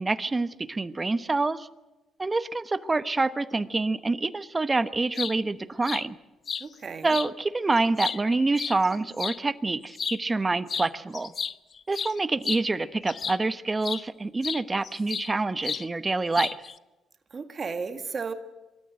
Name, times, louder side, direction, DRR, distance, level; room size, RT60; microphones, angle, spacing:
voice 1, 0.0-1.7 2.2-6.2 7.0-11.3 11.9-16.5, right 3 dB, 25° right, 13 dB, 1.0 m, -27 dB
sound 1, 4.9-5.3 5.9-6.0 6.5-6.7 7.1-7.3 7.8-9.4 9.9-10.2 10.7-10.9 11.1-13.5 13.8-14.0 14.4-15.3 15.6-15.9 16.3-16.8, left 6 dB, 45° left, 0.6 m, -32 dB
voice 2, 6.6-7.2 17.3-18.3, right 5 dB, 40° right, 7 dB, 1.9 m, -34 dB
24.0 x 13.5 x 9.1 m, 1.1 s
cardioid pair, 90°, 0 cm